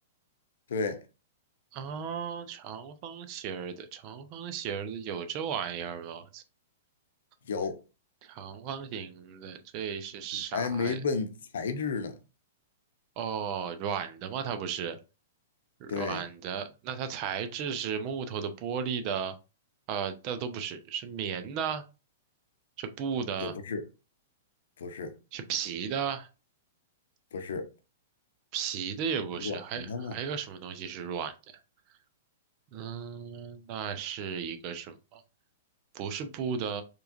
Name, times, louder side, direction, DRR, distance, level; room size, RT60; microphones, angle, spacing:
voice 1, 0.7-1.0 7.5-7.8 10.5-12.2 15.9-16.2 23.4-23.8 24.8-25.1 27.3-27.7 29.4-30.2, left 5 dB, 65° left, 0.7 m, -32 dB
voice 2, 1.7-6.4 8.2-11.0 13.2-15.0 15.8-19.3 19.9-21.8 22.8-23.5 25.3-26.3 28.5-31.3 32.7-35.2 35.9-36.8, right 7 dB, 40° right, 0.7 m, -35 dB
4.6 x 3.2 x 2.5 m
figure-of-eight pair, 105°, 0 cm